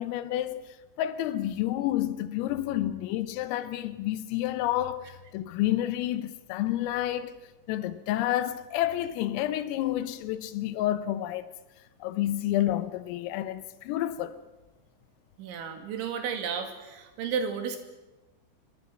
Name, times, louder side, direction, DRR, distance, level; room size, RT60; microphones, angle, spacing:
voice 1, 0.0-11.5 12.0-14.4, left 13 dB, 85° left, 3.6 m, -30 dB
voice 2, 15.4-17.8, right 6 dB, 65° right, 4.6 m, -32 dB
25.5 x 24.0 x 6.2 m
omnidirectional pair, 5.9 m